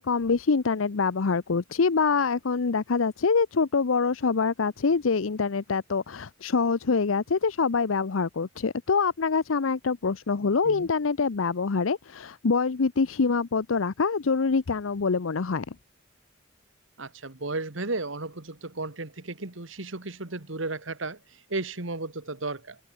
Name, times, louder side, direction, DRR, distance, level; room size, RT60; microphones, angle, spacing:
voice 1, 0.0-15.6, left 4 dB, 85° left, 0.7 m, -25 dB
voice 2, 17.0-22.8, right 2 dB, 75° right, 2.1 m, -34 dB
head